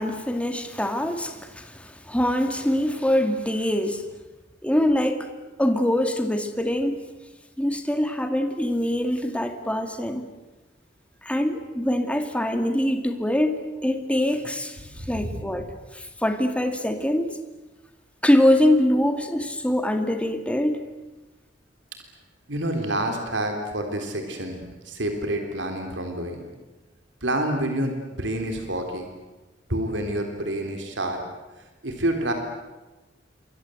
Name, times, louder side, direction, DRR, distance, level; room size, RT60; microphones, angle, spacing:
voice 1, 0.0-4.1 4.6-5.3 5.6-7.0 7.6-10.2 11.2-17.3 18.2-20.8, left 1 dB, 5° left, 2.3 m, -24 dB
voice 2, 15.0-15.6 22.5-26.4 27.2-29.1 29.7-31.2 31.6-32.3, right 1 dB, 80° right, 3.7 m, -28 dB
28.0 x 24.0 x 7.9 m
head